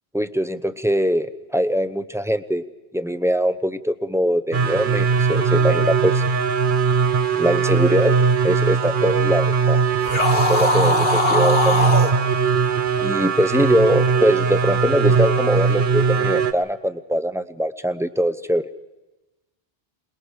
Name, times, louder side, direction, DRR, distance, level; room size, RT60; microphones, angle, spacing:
voice 1, 0.1-2.6 2.9-6.2 7.3-8.2 8.4-9.8 10.3-12.0 13.0-18.6, equal, 5° right, 9 dB, 0.6 m, -22 dB
sound 1, 4.5-16.5, right 5 dB, 55° right, 1.0 m, -20 dB
sound 2, 10.0-12.1, left 2 dB, 50° left, 2.1 m, -20 dB
28.0 x 20.0 x 4.9 m, 1.1 s
omnidirectional pair, 1.1 m